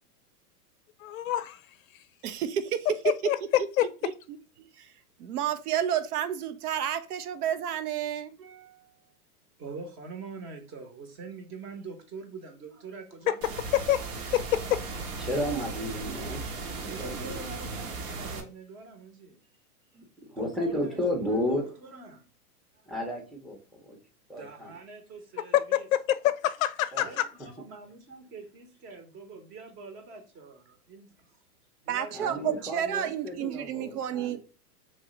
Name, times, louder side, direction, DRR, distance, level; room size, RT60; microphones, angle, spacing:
voice 1, 1.0-1.6 3.3-3.4 3.8-3.9 13.3-13.4 13.9-14.0 14.3-14.4 26.1-27.2, left 13 dB, 65° left, 0.5 m, -26 dB
voice 2, 2.2-3.1 4.0-4.4 4.8-4.9 5.2-8.8 31.9-34.4, right 9 dB, 80° right, 0.6 m, -31 dB
voice 3, 9.6-13.6 16.8-19.4 20.3-22.2 22.8-22.9 24.3-25.9 27.0-31.3 31.8-32.5, right 4 dB, 25° right, 0.8 m, -44 dB
sound 1, 13.4-18.4, right 3 dB, 60° right, 1.0 m, -37 dB
voice 4, 15.2-17.2 19.9-21.6 22.9-24.0 24.3-24.7 26.9-27.2 32.1-34.4, left 1 dB, ahead, 0.6 m, -33 dB
3.2 x 2.6 x 3.8 m
hypercardioid pair, 125°, 45 cm